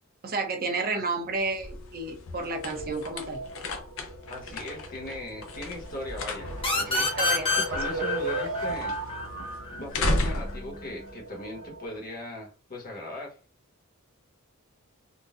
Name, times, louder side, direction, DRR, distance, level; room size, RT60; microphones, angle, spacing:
voice 1, 0.2-3.4 7.2-7.6, right 3 dB, 45° right, 4 dB, 0.7 m, -31 dB
sound 1, 1.2-12.0, left 1 dB, 70° left, 0.7 m, -35 dB
sound 2, 2.5-11.8, right 4 dB, 90° right, 1.0 m, -38 dB
voice 2, 4.3-8.9 9.7-13.4, left 2 dB, 40° left, 0 dB, 1.2 m, -39 dB
sound 3, 6.6-10.0, left 3 dB, 25° left, 0.8 m, -28 dB
3.7 x 2.2 x 2.5 m, 0.33 s
head